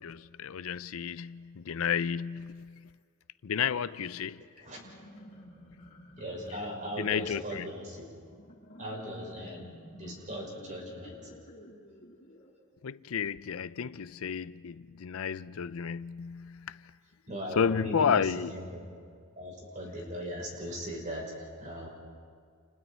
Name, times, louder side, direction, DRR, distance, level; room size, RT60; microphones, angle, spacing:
voice 1, 0.0-2.9 3.4-4.4 7.0-7.6 12.8-16.8 17.6-18.5, left 7 dB, 75° left, 0.5 m, -31 dB
sound 1, 4.6-12.5, equal, 40° left, 7.3 m, -52 dB
voice 2, 6.2-8.1 8.8-11.3 17.3-18.9 19.4-21.9, equal, 35° right, 6.0 m, -39 dB
30.0 x 29.0 x 4.4 m
head